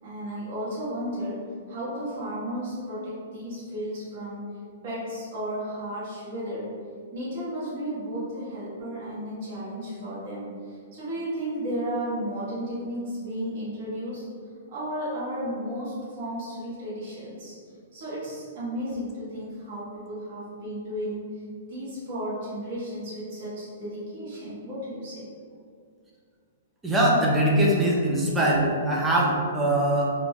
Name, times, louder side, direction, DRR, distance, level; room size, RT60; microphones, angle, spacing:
voice 1, 0.0-1.4 1.7-4.4 4.8-6.7 7.1-14.2 14.7-17.6 17.9-21.3 21.7-25.2, equal, 35° right, -11 dB, 1.4 m, -33 dB
voice 2, 26.8-30.1, right 1 dB, 5° right, -4 dB, 0.4 m, -22 dB
3.8 x 2.3 x 3.2 m, 2.2 s
hypercardioid pair, 175°, 0 cm